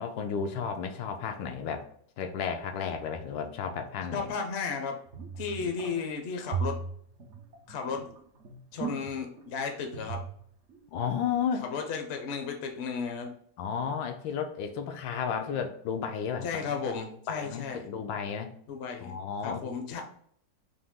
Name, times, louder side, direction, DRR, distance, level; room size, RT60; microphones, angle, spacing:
voice 1, 0.0-1.8 2.2-4.3 5.6-5.7 10.9-11.6 13.6-16.8 17.3-18.5 19.0-20.0, left 7 dB, 85° left, 5 dB, 1.3 m, -33 dB
voice 2, 4.1-5.0 5.4-6.8 7.7-8.1 8.7-10.2 11.6-13.3 16.4-17.8 18.7-19.2 19.4-20.0, left 5 dB, 60° left, 4 dB, 0.6 m, -34 dB
sound 1, 5.1-6.0 6.4-9.6 9.9-10.4 10.7-10.8, right 5 dB, 80° right, 0.6 m, -36 dB
4.1 x 2.8 x 3.6 m, 0.62 s
omnidirectional pair, 2.0 m